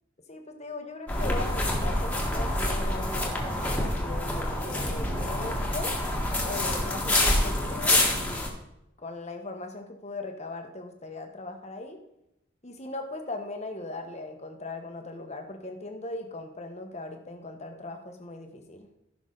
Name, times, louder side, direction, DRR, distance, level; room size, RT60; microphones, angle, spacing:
voice 1, 0.3-5.9 6.4-8.4 9.0-12.0 12.6-18.9, left 2 dB, 35° left, 5 dB, 1.2 m, -39 dB
sound 1, 1.1-8.5, left 1 dB, 5° left, 1.7 m, -27 dB
15.0 x 6.0 x 4.0 m, 0.85 s
head